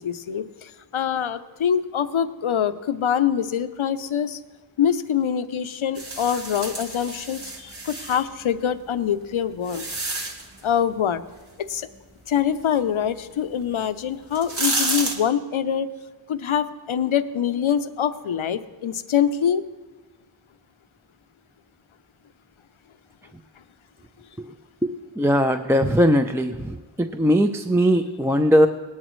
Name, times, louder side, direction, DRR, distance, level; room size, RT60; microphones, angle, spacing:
voice 1, 0.0-4.4 4.8-9.9 10.6-11.2 11.7-11.9 12.3-15.9 16.3-19.6, left 8 dB, 80° left, 11 dB, 0.7 m, -24 dB
sound 1, 6.0-8.2 9.0-10.6 13.6-13.7 14.2-15.1, right 2 dB, 55° right, 1.8 m, -29 dB
voice 2, 24.8-28.7, equal, 5° right, 6 dB, 0.5 m, -20 dB
18.5 x 12.0 x 3.1 m, 1.3 s
wide cardioid pair, 60°, 48 cm